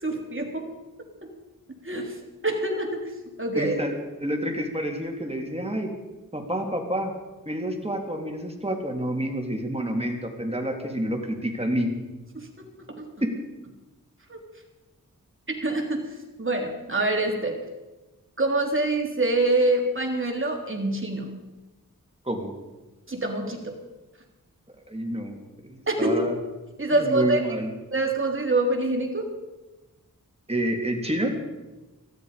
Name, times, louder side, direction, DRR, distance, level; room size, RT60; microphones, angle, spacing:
voice 1, 0.0-0.6 1.2-1.3 1.7-2.2 2.4-3.1 3.4-3.7 12.4-13.3 14.3-14.4 15.5-17.6 18.4-21.4 23.1-23.7 25.9-26.2 26.8-27.4 27.9-29.3, right 2 dB, 35° right, 2 dB, 3.5 m, -26 dB
voice 2, 3.5-3.9 4.2-5.9 6.3-7.1 7.4-11.9 13.2-13.3 22.2-22.5 24.9-25.4 25.6-26.3 26.9-27.7 30.5-31.3, right 1 dB, 20° right, 3 dB, 3.4 m, -28 dB
19.0 x 14.0 x 5.3 m, 1.1 s
cardioid pair, 40°, 34 cm